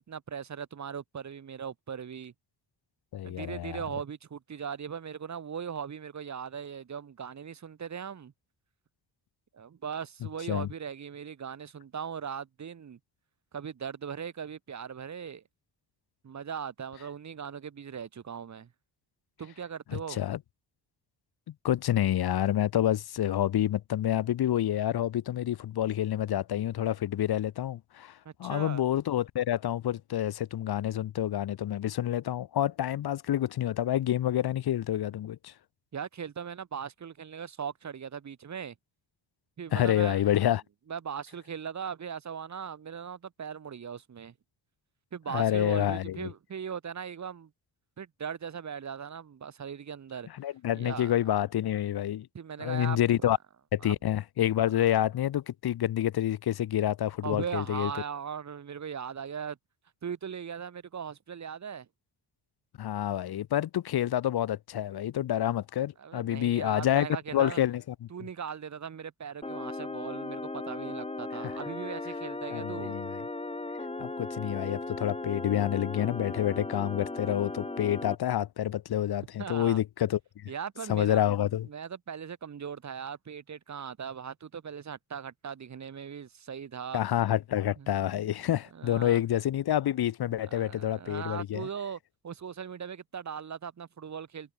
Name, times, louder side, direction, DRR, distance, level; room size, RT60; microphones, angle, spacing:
voice 1, 0.0-2.3 3.2-8.3 9.5-13.0 13.5-15.4 16.2-18.7 19.4-20.2 28.2-28.8 35.9-38.7 39.6-40.2 40.9-44.3 45.1-47.5 48.0-50.3 50.7-51.1 52.3-53.3 53.8-53.9 57.2-59.6 60.0-61.9 66.0-67.6 68.1-72.9 79.4-79.8 80.5-81.2 81.7-87.0 87.8-88.3 88.7-89.2 90.5-94.5, right 7 dB, 40° right, 1.7 m, -39 dB
voice 2, 3.1-3.8 10.5-10.7 19.9-20.4 21.6-35.5 39.7-40.6 45.3-46.3 50.4-52.3 52.6-53.4 53.7-57.9 62.8-68.1 71.4-71.5 72.5-73.2 74.0-80.5 80.9-81.7 86.9-91.7, left 11 dB, 60° left, 1.1 m, -28 dB
sound 1, 69.4-78.1, left 2 dB, 15° left, 2.8 m, -37 dB
cardioid pair, 110°, 43 cm